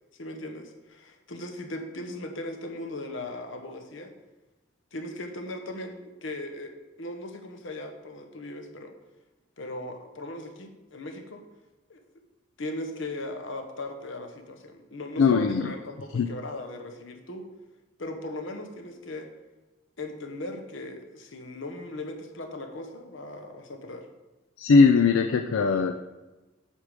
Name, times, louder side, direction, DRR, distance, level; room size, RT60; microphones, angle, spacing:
voice 1, 0.2-4.1 4.9-6.7 7.0-8.9 9.6-11.4 11.9-12.0 12.6-17.4 18.0-19.3 20.0-24.1, left 1 dB, 70° left, 5 dB, 1.0 m, -38 dB
voice 2, 15.2-15.7 16.1-16.3 24.6-25.9, left 4 dB, 85° left, 7 dB, 0.4 m, -20 dB
8.3 x 3.6 x 6.5 m, 1.1 s
head